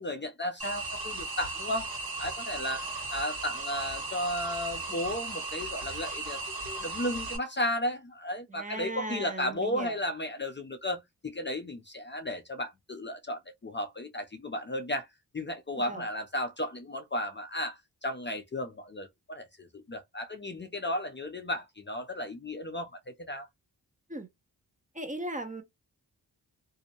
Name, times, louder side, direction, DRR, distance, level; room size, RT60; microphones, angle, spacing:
voice 1, 0.0-1.9 2.2-15.1 15.3-23.5, left 1 dB, 30° left, 0.5 m, -34 dB
sound 1, 0.6-7.4, right 3 dB, 60° right, 1.3 m, -36 dB
voice 2, 8.5-10.0 15.9-16.0 24.1-24.3 24.9-25.6, right 1 dB, 20° right, 0.8 m, -37 dB
2.6 x 2.1 x 2.8 m
cardioid pair, 50°, 40 cm